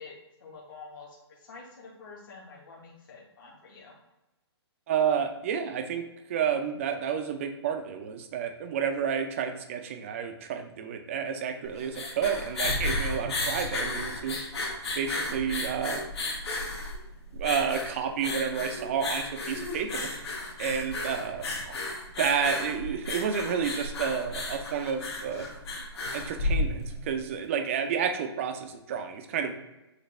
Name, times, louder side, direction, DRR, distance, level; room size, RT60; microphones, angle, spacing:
voice 1, 0.0-3.9, left 4 dB, 45° left, -4 dB, 1.2 m, -48 dB
voice 2, 4.9-6.0 6.3-14.7 15.0-16.0 17.3-20.1 20.6-21.7 22.2-25.5 26.1-29.5, right 7 dB, 30° right, 6 dB, 0.5 m, -30 dB
sound 1, 11.7-27.1, left 2 dB, 70° left, 1.2 m, -33 dB
6.6 x 2.5 x 3.1 m, 0.98 s
hypercardioid pair, 160°, 14 cm